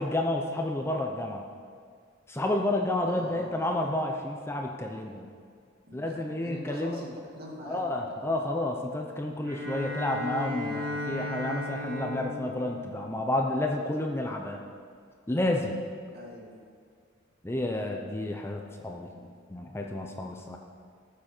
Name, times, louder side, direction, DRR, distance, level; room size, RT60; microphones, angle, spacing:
voice 1, 0.0-1.4 2.3-5.3 5.9-7.0 7.6-14.6 15.3-15.8 17.4-20.6, left 1 dB, 15° left, 1 dB, 0.7 m, -30 dB
voice 2, 3.1-3.5 5.9-7.8 16.1-16.6 17.6-17.8, equal, 50° right, -2 dB, 2.1 m, -43 dB
Bowed string instrument, 9.4-13.9, left 1 dB, 80° right, 2.3 m, -36 dB
18.5 x 7.2 x 4.5 m, 2.1 s
head